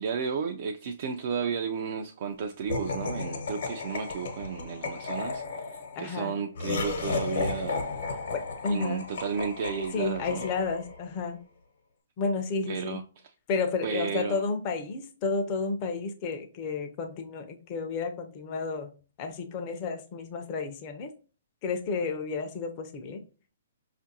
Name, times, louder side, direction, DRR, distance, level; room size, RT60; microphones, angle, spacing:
voice 1, 0.0-7.8 8.7-10.5 12.7-13.0 13.8-14.4, right 6 dB, 50° right, 0.3 m, -33 dB
Laughter, 2.7-11.1, left 4 dB, 65° left, 0.9 m, -34 dB
voice 2, 6.0-6.4 8.3-9.0 9.9-11.4 12.2-13.0 13.5-18.9 19.2-21.1 21.6-23.2, left 4 dB, 35° left, 0.5 m, -31 dB
5.1 x 2.4 x 2.7 m
hypercardioid pair, 140°, 0 cm